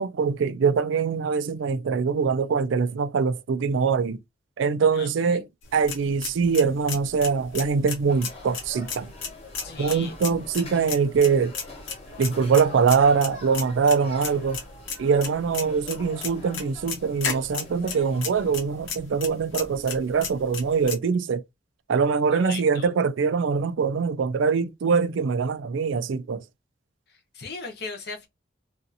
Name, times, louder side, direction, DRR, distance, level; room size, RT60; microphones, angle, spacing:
voice 1, 0.0-4.2 4.6-5.5 5.7-9.1 9.8-11.5 12.2-14.6 15.0-21.4 21.9-26.4, right 5 dB, 80° right, 0.4 m, -23 dB
voice 2, 4.9-5.4 9.6-10.1 22.3-22.9 27.1-28.3, left 4 dB, 55° left, 0.9 m, -38 dB
sound 1, 5.6-21.0, left 5 dB, 90° left, 1.0 m, -36 dB
sound 2, 8.1-18.6, left 2 dB, 30° left, 1.0 m, -45 dB
2.6 x 2.4 x 2.6 m
head